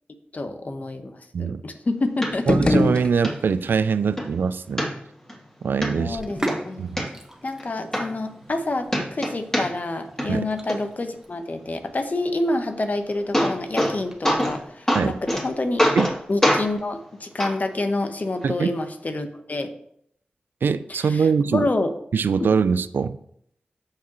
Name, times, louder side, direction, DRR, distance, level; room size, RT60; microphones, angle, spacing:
voice 1, 0.3-2.5 5.9-6.9 7.4-15.8 16.3-19.7 20.9-21.9 22.4-22.5, left 2 dB, 50° left, 7 dB, 1.1 m, -28 dB
sound 1, 2.2-2.3 2.8-2.9 3.2-3.3 3.8-4.3 4.8-5.4 5.8-5.9 6.3-7.0 7.6-7.7 7.9-8.6 8.9-9.9 10.2-10.7 12.8-12.9 13.1-14.0 14.2-14.6 14.9-15.4 15.8-16.2 16.4-16.6 17.4-17.5 18.4-18.5, equal, 15° left, 2.9 m, -23 dB
sound 2, 2.3-3.7, left 2 dB, 35° left, 0.7 m, -23 dB
voice 2, 2.5-4.8 5.6-6.2 6.8-7.1 10.3-10.5 14.9-15.2 16.0-16.1 18.4-18.7 20.6-21.7 22.1-23.2, right 5 dB, 85° right, 14 dB, 0.4 m, -23 dB
Sink (filling or washing), 6.0-16.8, right 1 dB, 15° right, 1.3 m, -39 dB
13.5 x 4.9 x 3.0 m, 0.70 s
cardioid pair, 45°, 3 cm